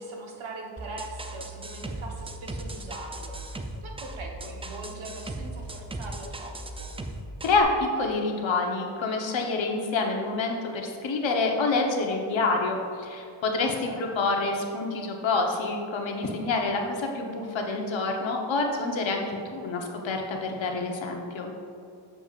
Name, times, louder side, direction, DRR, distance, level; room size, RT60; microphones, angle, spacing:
voice 1, 0.0-6.9 13.9-14.5, right 2 dB, 70° right, 1 dB, 1.2 m, -41 dB
sound 1, 0.8-7.6, right 2 dB, 15° right, 0.3 m, -38 dB
voice 2, 8.0-19.2 19.5-21.5, left 3 dB, 65° left, 1 dB, 1.0 m, -27 dB
7.4 x 6.8 x 2.4 m, 2.6 s
cardioid pair, 105°, 49 cm